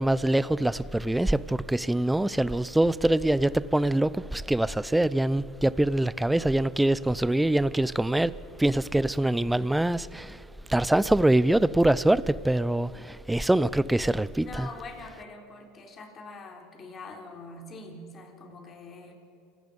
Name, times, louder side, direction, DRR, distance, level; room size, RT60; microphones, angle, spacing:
voice 1, 0.0-8.3 8.6-10.4 10.7-14.7, right 1 dB, 5° right, 0.6 m, -24 dB
voice 2, 14.4-19.1, left 3 dB, 35° left, 4.0 m, -44 dB
29.0 x 17.5 x 5.4 m
hypercardioid pair, 90°, 0 cm